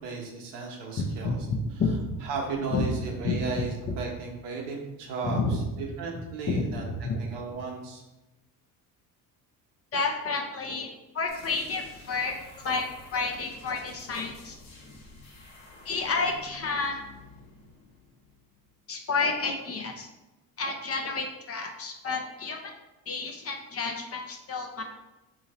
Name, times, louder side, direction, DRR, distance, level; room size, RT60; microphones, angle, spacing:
voice 1, 0.0-1.4 2.2-8.0, right 4 dB, 75° right, 0 dB, 1.0 m, -35 dB
voice 2, 1.0-2.2 2.7-2.8 3.2-3.7 5.2-5.6 6.5-6.6 7.0-7.2 9.9-10.9 11.1-12.8 13.1-14.6 15.8-17.0 18.9-20.1 20.6-22.6 23.1-24.8, left 4 dB, 35° left, 3 dB, 0.6 m, -30 dB
sound 1, 11.3-18.8, left 3 dB, 65° left, 1.0 m, -50 dB
2.8 x 2.6 x 4.1 m, 1.0 s
supercardioid pair, 75°, 42 cm